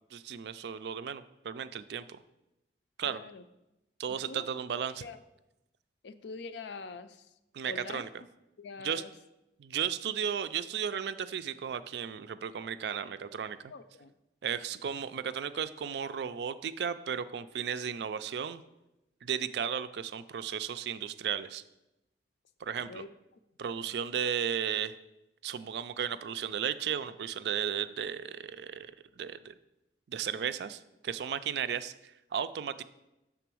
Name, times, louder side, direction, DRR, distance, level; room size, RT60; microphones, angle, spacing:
voice 1, 0.1-2.2 3.0-3.2 4.0-5.0 7.5-8.1 8.8-9.0 9.6-13.7 14.4-18.6 19.2-21.6 22.6-23.0 23.6-24.9 25.4-29.5 30.1-32.8, right 8 dB, 70° right, 13 dB, 0.3 m, -35 dB
voice 2, 3.1-3.4 4.1-4.5 5.0-5.2 6.0-7.3 7.7-8.1 8.6-9.1 13.7-14.1 22.8-23.1, left 4 dB, 75° left, 11 dB, 0.4 m, -44 dB
6.8 x 3.7 x 6.1 m, 0.92 s
head